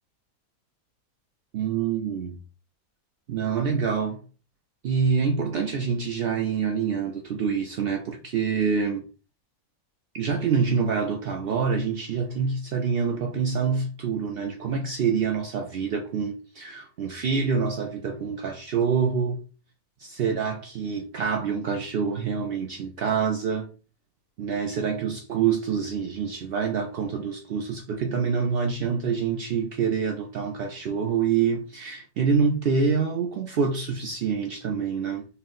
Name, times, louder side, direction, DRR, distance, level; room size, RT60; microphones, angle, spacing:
voice 1, 1.5-2.4 3.3-4.2 4.8-9.0 10.1-19.4 20.0-23.7 24.4-35.3, right 6 dB, 75° right, 0.5 m, -26 dB
4.3 x 2.1 x 3.7 m
omnidirectional pair, 1.6 m